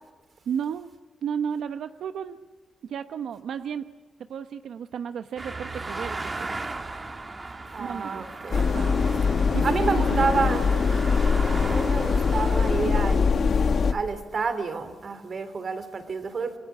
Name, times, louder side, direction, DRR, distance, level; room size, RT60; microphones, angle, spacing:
voice 1, 0.5-0.9 1.2-2.4 2.8-3.9 4.3-6.7 7.8-10.8 12.8-13.0, right 8 dB, 80° right, 0.9 m, -34 dB
sound 1, 5.4-12.9, right 3 dB, 25° right, 1.8 m, -36 dB
voice 2, 7.7-8.7 9.6-10.7 11.7-13.5 13.9-16.6, right 4 dB, 45° right, 3.1 m, -29 dB
sound 2, 8.5-13.9, left 5 dB, 50° left, 1.5 m, -22 dB
27.5 x 22.5 x 9.7 m
wide cardioid pair, 125°, 0 cm